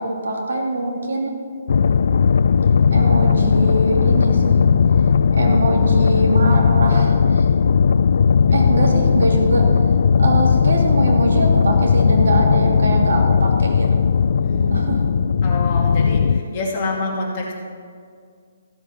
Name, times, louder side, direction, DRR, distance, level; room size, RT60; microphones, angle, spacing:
voice 1, 0.0-1.4 2.9-4.7 5.3-7.5 8.5-14.0 14.7-15.1, right 2 dB, 85° right, 0 dB, 2.7 m, -23 dB
sound 1, 1.7-16.4, left 6 dB, 60° left, 0.3 m, -16 dB
voice 2, 14.4-14.8 15.4-17.5, left 3 dB, 25° left, -4 dB, 2.6 m, -27 dB
15.0 x 7.9 x 5.9 m, 2.1 s
hypercardioid pair, 170°, 0 cm